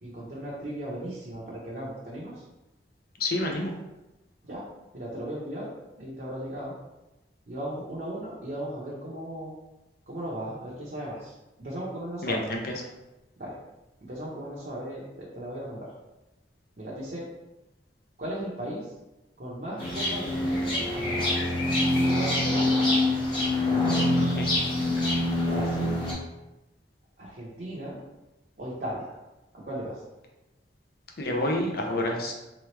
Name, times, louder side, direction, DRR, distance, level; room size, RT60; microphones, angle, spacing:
voice 1, 0.0-2.4 4.4-4.7 4.9-5.7 6.0-6.7 7.5-9.5 10.1-11.3 11.6-12.4 13.4-13.6 14.0-15.9 16.8-17.3 18.2-18.9 19.4-21.6 22.0-22.7 23.6-24.2 25.5-26.0 27.2-28.0 28.6-29.2 29.5-30.0, right 1 dB, 55° right, -7 dB, 0.8 m, -36 dB
voice 2, 3.2-3.7 12.2-12.6 24.2-24.5 31.2-32.3, left 1 dB, 55° left, 1 dB, 0.6 m, -28 dB
sound 1, 19.8-26.1, left 1 dB, 30° left, 1.2 m, -25 dB
3.3 x 3.0 x 3.2 m, 1.0 s
head